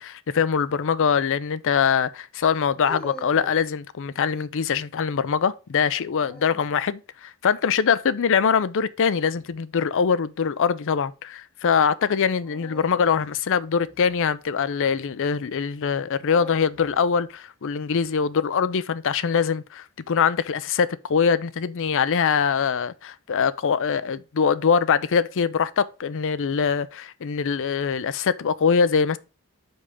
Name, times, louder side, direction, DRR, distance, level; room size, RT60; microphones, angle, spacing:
voice 1, 0.0-29.2, left 6 dB, 60° left, 0.5 m, -23 dB
sound 1, 0.6-0.9 2.4-3.7 5.8-6.8 9.2-9.6 12.4-14.8 15.8-17.1, right 1 dB, 5° left, 1.1 m, -45 dB
5.3 x 4.9 x 5.3 m
head